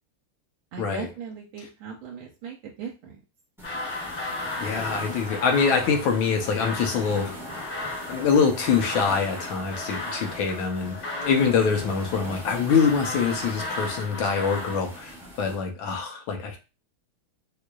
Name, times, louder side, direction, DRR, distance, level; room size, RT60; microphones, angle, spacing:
voice 1, 0.7-3.2, right 6 dB, 80° right, -2 dB, 1.5 m, -38 dB
sound 1, 3.6-14.8, left 2 dB, 40° left, 1.2 m, -35 dB
sound 2, 3.6-15.6, equal, 5° right, 0.3 m, -42 dB
voice 2, 4.6-7.4 8.1-16.6, left 5 dB, 75° left, 4 dB, 1.5 m, -24 dB
4.7 x 2.5 x 2.2 m, 0.30 s
omnidirectional pair, 2.3 m